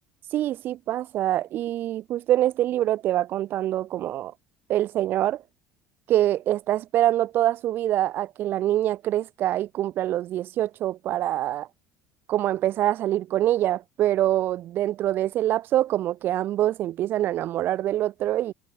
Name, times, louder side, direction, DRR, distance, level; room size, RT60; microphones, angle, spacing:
voice 1, 0.3-4.3 4.7-5.4 6.1-11.7 12.3-18.5, right 13 dB, 55° right, 2.5 m, -25 dB
supercardioid pair, 90°, 4 cm